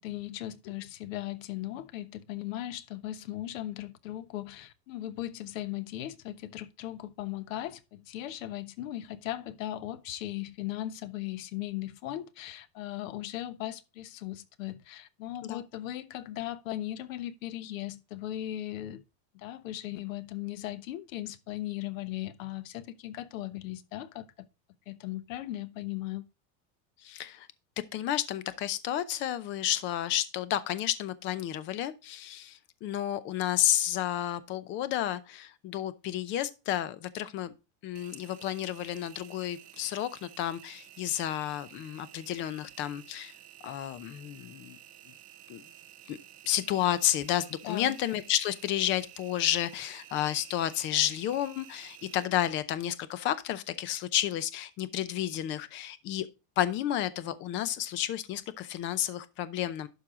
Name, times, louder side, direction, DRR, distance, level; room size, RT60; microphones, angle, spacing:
voice 1, 0.0-19.0 19.3-24.5 24.9-26.2 47.6-47.9, left 14 dB, 80° left, 1.1 m, -38 dB
voice 2, 27.0-27.5 27.9-37.5 37.8-43.3 43.6-44.8 45.5-45.6 46.1-46.2 46.4-56.3 56.6-59.9, left 12 dB, 30° left, 0.6 m, -31 dB
Engine, 37.9-52.2, right 13 dB, 20° right, 0.4 m, -52 dB
11.5 x 4.7 x 3.7 m
supercardioid pair, 165°, 39 cm